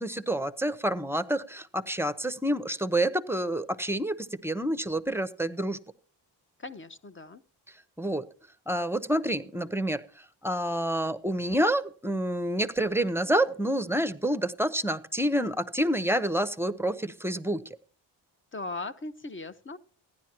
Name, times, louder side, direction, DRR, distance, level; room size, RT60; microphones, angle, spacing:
voice 1, 0.0-5.8 8.0-8.2 8.7-10.0 10.4-17.6, right 1 dB, 5° right, 11 dB, 0.8 m, -28 dB
voice 2, 6.6-7.4 18.5-19.8, left 3 dB, 30° left, 12 dB, 0.8 m, -38 dB
15.0 x 10.5 x 2.9 m, 0.41 s
cardioid pair, 70°, 43 cm